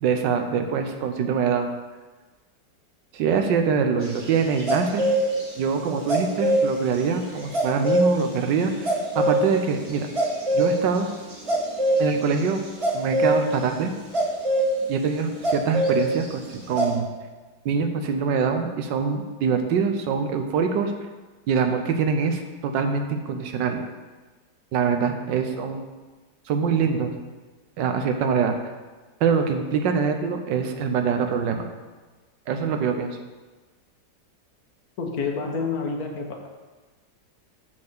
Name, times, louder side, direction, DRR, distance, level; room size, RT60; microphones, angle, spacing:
voice 1, 0.0-1.7 3.1-5.1 5.6-10.1 10.5-11.1 12.0-12.6 12.9-13.9 14.9-17.1 17.6-20.9 21.5-23.8 24.7-25.8 26.5-27.2 27.8-28.6 29.2-31.7 32.5-33.2, right 6 dB, 85° right, 6 dB, 1.5 m, -24 dB
sound 1, 4.0-5.5 6.1-6.7 7.5-8.2 8.8-9.7 10.0-10.7 11.3-12.1 12.8-13.3 14.1-14.7 15.4-16.2 16.5-16.9, right 1 dB, 20° right, 1.2 m, -22 dB
voice 2, 35.0-36.5, left 4 dB, 60° left, 2 dB, 1.4 m, -28 dB
7.1 x 4.4 x 6.7 m, 1.3 s
omnidirectional pair, 1.9 m